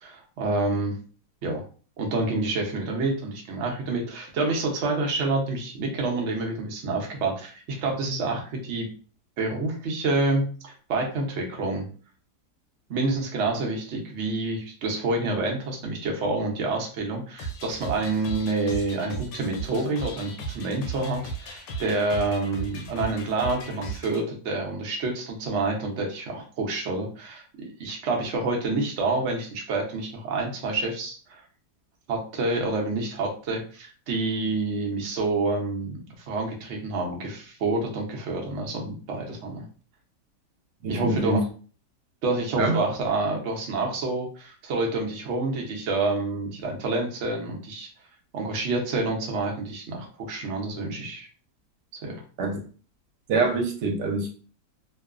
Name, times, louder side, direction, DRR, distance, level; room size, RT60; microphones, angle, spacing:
voice 1, 0.0-1.0 1.4-1.6 2.0-8.9 9.4-11.8 12.9-27.4 27.8-31.4 32.1-39.6 40.9-41.4 42.2-47.9 48.3-51.3 52.0-52.2, right 2 dB, 60° right, 1 dB, 0.8 m, -28 dB
sound 1, 17.4-24.2, right 3 dB, 85° left, 1.2 m, -36 dB
voice 2, 40.8-41.4 42.6-42.8 52.4-52.6 53.3-54.3, right 3 dB, 80° right, 1 dB, 1.2 m, -25 dB
2.9 x 2.0 x 2.3 m, 0.40 s
omnidirectional pair, 1.8 m